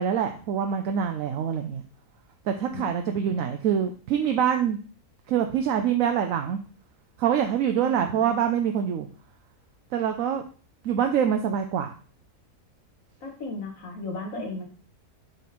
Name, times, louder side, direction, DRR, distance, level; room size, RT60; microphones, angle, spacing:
voice 1, 0.0-1.8 2.5-4.8 5.3-6.6 7.2-9.1 9.9-10.4 10.8-11.9 14.4-14.5, right 8 dB, 65° right, 5 dB, 0.9 m, -25 dB
voice 2, 2.7-3.5 7.8-8.3 13.2-14.6, left 3 dB, 55° left, 0 dB, 2.0 m, -36 dB
8.1 x 3.9 x 4.3 m, 0.39 s
omnidirectional pair, 1.7 m